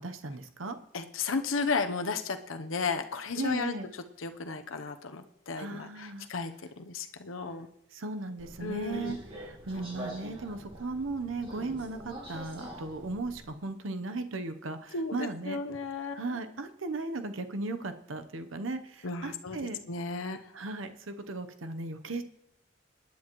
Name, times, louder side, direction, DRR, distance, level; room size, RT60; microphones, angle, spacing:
voice 1, 0.0-0.8 3.4-3.9 5.6-6.3 7.9-15.6 16.1-19.8 20.5-22.2, right 3 dB, 80° right, 8 dB, 0.9 m, -36 dB
voice 2, 0.9-3.7 4.2-6.5 6.8-7.7 8.6-9.2 14.9-16.2 19.0-19.6 19.9-20.4, left 4 dB, 85° left, 7 dB, 0.8 m, -34 dB
Subway metro underground, 8.4-13.5, right 1 dB, 25° right, 2.2 m, -45 dB
25.0 x 10.5 x 3.1 m, 0.82 s
head